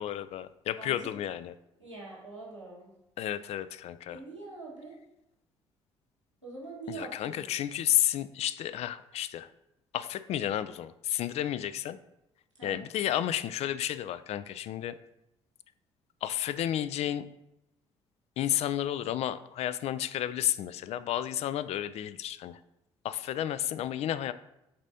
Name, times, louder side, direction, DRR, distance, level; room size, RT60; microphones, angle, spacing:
voice 1, 0.0-1.5 3.2-4.2 6.9-9.5 9.9-12.0 12.6-15.0 16.2-17.2 18.4-22.6 23.0-24.3, left 11 dB, 45° left, 14 dB, 0.4 m, -32 dB
voice 2, 0.8-1.1 1.8-2.9 4.1-4.9 6.4-7.5 12.6-12.8, right 3 dB, 90° right, -7 dB, 1.5 m, -44 dB
8.5 x 4.1 x 2.7 m, 0.88 s
figure-of-eight pair, 45°, 15 cm